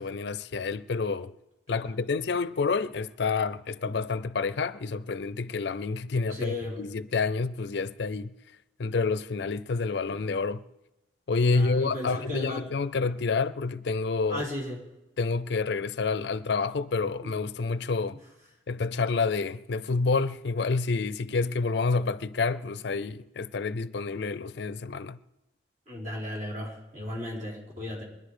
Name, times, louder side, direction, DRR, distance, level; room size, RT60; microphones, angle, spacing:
voice 1, 0.0-1.3 1.7-8.3 8.8-10.6 11.3-14.5 15.2-18.2 18.7-25.2, left 4 dB, 65° left, 0.5 m, -28 dB
voice 2, 6.3-6.8 11.5-12.6 14.3-14.8 17.2-17.3 25.9-28.0, left 1 dB, 40° right, 4.4 m, -36 dB
22.5 x 11.0 x 5.0 m
head